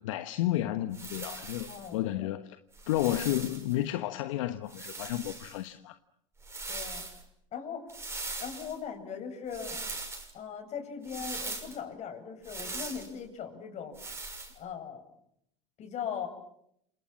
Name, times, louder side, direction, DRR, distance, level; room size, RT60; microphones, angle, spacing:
voice 1, 0.0-2.6 2.9-6.0, left 14 dB, 70° left, 1.3 m, -32 dB
sound 1, 0.9-1.9 2.7-3.7 4.7-5.6 6.4-7.2 7.9-8.8 9.5-10.3 11.0-11.8 12.4-13.1 13.9-14.5, right 3 dB, 15° right, 6.3 m, -40 dB
voice 2, 1.7-2.3 6.7-7.0 7.5-7.9 8.4-9.8 10.3-14.0 14.6-15.0 15.8-16.3, left 7 dB, 45° left, 7.7 m, -39 dB
29.5 x 27.0 x 7.4 m
hypercardioid pair, 90°, 17 cm